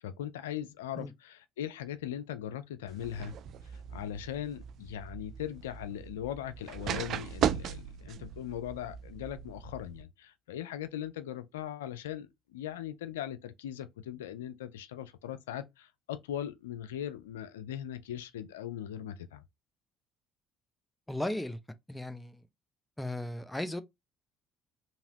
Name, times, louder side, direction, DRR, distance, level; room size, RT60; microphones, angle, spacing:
voice 1, 0.0-3.4 3.6-19.4, left 11 dB, 85° left, 0.3 m, -39 dB
sound 1, 2.9-10.0, right 9 dB, 60° right, 0.3 m, -37 dB
voice 2, 21.1-21.6 21.9-22.4 23.0-23.8, left 1 dB, 10° left, 0.7 m, -35 dB
2.9 x 2.9 x 2.8 m
hypercardioid pair, 60°, 0 cm